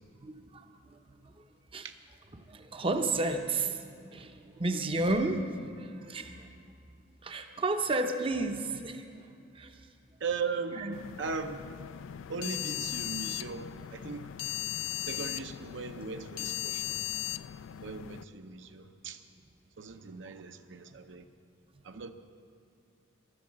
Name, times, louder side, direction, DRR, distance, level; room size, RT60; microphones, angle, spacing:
voice 1, 0.2-1.3 1.7-1.9 2.3-6.5 7.2-9.0 9.5-9.8 10.7-10.9 20.9-21.0, right 2 dB, 25° right, 6 dB, 0.7 m, -32 dB
voice 2, 10.2-11.7 12.3-14.5 14.9-17.0 17.8-19.2 19.8-21.2 21.8-22.1, right 5 dB, 65° right, 7 dB, 0.7 m, -38 dB
sound 1, 10.9-18.2, left 14 dB, 70° left, 0.3 m, -38 dB
14.0 x 11.5 x 7.2 m, 2.5 s
head